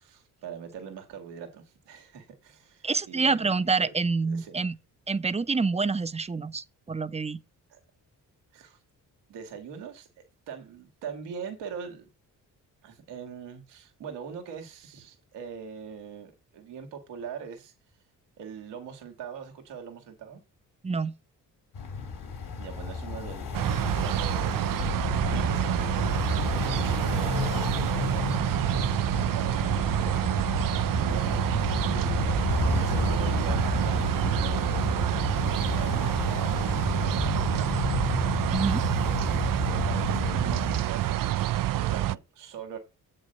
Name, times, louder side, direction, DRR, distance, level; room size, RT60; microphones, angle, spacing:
voice 1, 0.0-3.9 4.3-4.6 7.7-7.8 8.5-8.8 9.3-12.1 12.8-17.7 18.4-20.4 22.6-24.8 25.3-26.0 26.5-31.8 32.6-37.7 38.9-41.4 41.7-42.8, right 7 dB, 90° right, 2.0 m, -42 dB
voice 2, 2.8-4.8 5.1-7.4 20.8-21.2 38.5-38.8, right 4 dB, 15° right, 0.7 m, -27 dB
sound 1, 21.7-40.8, left 4 dB, 70° left, 2.8 m, -31 dB
sound 2, 23.5-42.1, right 13 dB, 55° right, 0.5 m, -27 dB
7.7 x 5.4 x 6.4 m
supercardioid pair, 55°, 41 cm